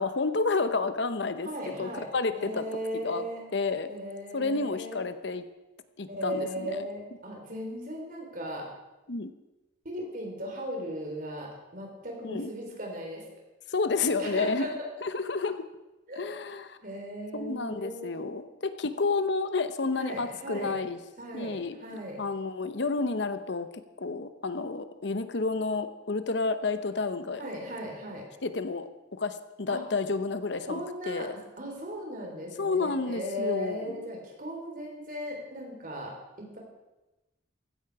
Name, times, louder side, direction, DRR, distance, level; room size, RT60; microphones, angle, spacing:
voice 1, 0.0-2.6 3.0-3.2 3.5-3.9 4.3-5.4 6.0-6.8 9.1-9.3 12.2-12.5 13.7-14.7 15.0-15.7 16.2-16.8 17.3-21.0 21.3-21.8 22.2-23.7 24.0-27.5 28.4-31.3 32.6-34.0, left 3 dB, 60° left, 11 dB, 0.8 m, -30 dB
voice 2, 1.4-2.1 2.3-3.4 3.9-5.0 6.1-8.7 9.8-13.2 14.2-14.9 16.1-16.3 16.8-18.4 19.9-20.7 21.2-22.2 27.4-28.3 29.7-29.8 30.7-36.6, equal, 45° right, 0 dB, 3.9 m, -37 dB
15.5 x 13.5 x 4.8 m, 1.0 s
head